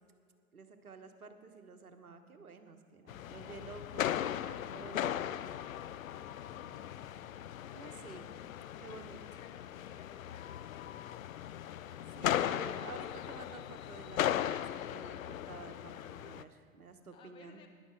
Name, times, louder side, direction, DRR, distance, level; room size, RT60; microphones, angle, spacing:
voice 1, 0.5-5.3 7.7-8.3 8.8-9.2 12.2-17.7, right 4 dB, 80° right, 8 dB, 1.2 m, -51 dB
sound 1, 3.1-16.4, left 11 dB, 70° left, 0.5 m, -38 dB
voice 2, 6.5-8.5 8.9-12.3 17.1-17.7, left 6 dB, 15° left, 3 dB, 0.4 m, -60 dB
12.0 x 10.5 x 4.7 m, 2.3 s
figure-of-eight pair, 100°, 43 cm